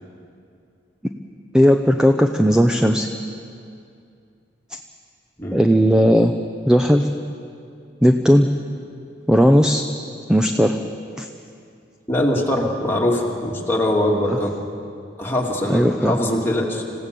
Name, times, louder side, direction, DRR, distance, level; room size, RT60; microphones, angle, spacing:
voice 1, 1.5-3.1 5.5-6.3 6.7-7.1 8.0-8.5 9.3-9.8 10.3-10.8 11.2-11.3 15.7-16.2, equal, 5° right, 5 dB, 0.6 m, -16 dB
voice 2, 12.1-14.6 15.2-16.9, left 1 dB, 15° left, -2 dB, 2.6 m, -22 dB
26.5 x 16.5 x 6.9 m, 2.4 s
head